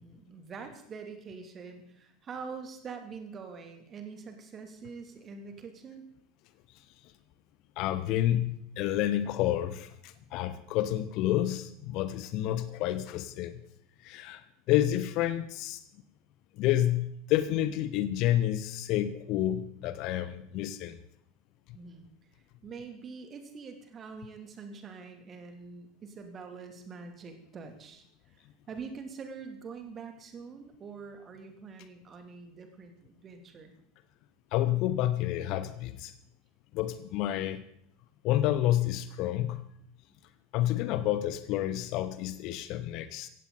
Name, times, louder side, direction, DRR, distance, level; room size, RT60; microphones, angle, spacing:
voice 1, 0.0-6.0 21.7-22.1 22.6-28.0 28.3-33.7 40.1-40.3, right 5 dB, 30° right, 5 dB, 2.9 m, -45 dB
voice 2, 7.8-13.6 14.0-14.4 14.7-15.8 16.6-21.0 34.5-36.1 36.7-37.6 38.2-39.6 40.5-43.3, left 13 dB, 45° left, 13 dB, 1.0 m, -29 dB
17.0 x 15.5 x 4.1 m, 0.72 s
figure-of-eight pair, 75°, 0 cm